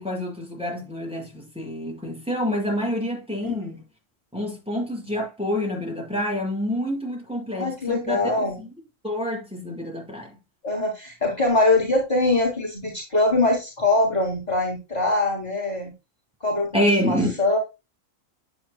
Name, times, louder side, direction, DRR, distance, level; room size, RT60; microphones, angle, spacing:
voice 1, 0.0-3.8 4.3-8.7 9.0-10.4 16.7-17.4, equal, 5° right, 6.0 m, -27 dB
voice 2, 7.6-8.6 10.6-15.9 16.4-16.7 17.0-17.6, left 2 dB, 30° left, 3.2 m, -22 dB
9.9 x 9.9 x 2.3 m
omnidirectional pair, 1.4 m